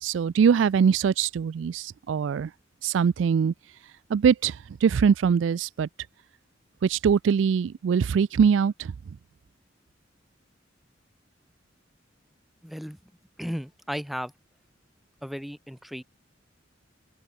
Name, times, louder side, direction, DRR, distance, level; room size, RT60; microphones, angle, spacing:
voice 1, 0.0-2.5 2.8-3.5 4.1-5.9 6.8-8.9, right 6 dB, 75° right, 0.3 m, -22 dB
voice 2, 12.6-13.0 13.4-14.3 15.2-16.0, equal, ahead, 1.7 m, -34 dB
open air
head